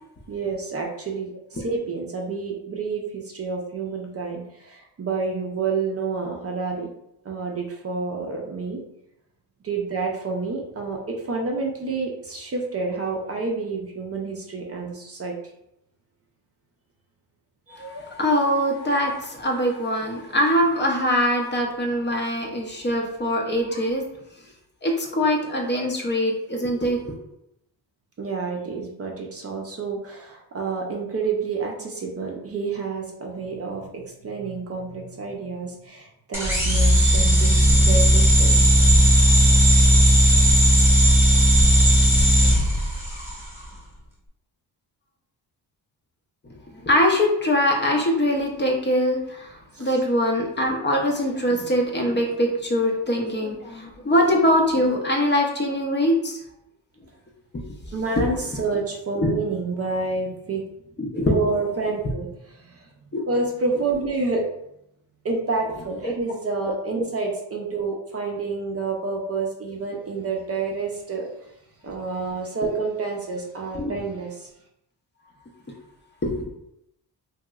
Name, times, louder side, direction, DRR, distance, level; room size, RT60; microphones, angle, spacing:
voice 1, 0.3-6.9 7.2-8.8 9.6-15.3 17.7-17.8 28.2-38.6 49.7-49.9 57.9-60.6 61.3-62.3 62.5-62.9 63.3-64.4 65.2-71.5 71.8-74.5, right 4 dB, 35° right, 0 dB, 0.5 m, -29 dB
voice 2, 17.7-24.0 24.8-27.1 46.7-56.4 57.5-57.6 59.2-59.3 61.0-61.4 63.1-63.2 66.0-66.1 67.0-67.1 73.8-74.0 76.2-76.3, equal, 25° left, 0 dB, 0.5 m, -23 dB
sound 1, 36.3-43.4, equal, 5° right, 1.0 m, -16 dB
3.0 x 2.8 x 2.3 m, 0.80 s
cardioid pair, 100°, 42 cm